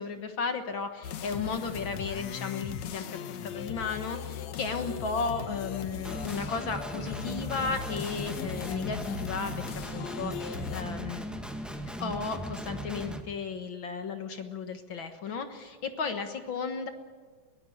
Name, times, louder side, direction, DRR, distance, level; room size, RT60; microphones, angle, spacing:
voice 1, 0.0-9.7 9.9-11.3 12.0-16.9, left 5 dB, 50° left, 7 dB, 1.8 m, -34 dB
sound 1, 1.0-10.8, left 8 dB, 70° left, 2.2 m, -39 dB
Guitar, 6.0-13.2, right 1 dB, ahead, 0.6 m, -38 dB
21.5 x 16.5 x 9.4 m, 1.4 s
omnidirectional pair, 3.3 m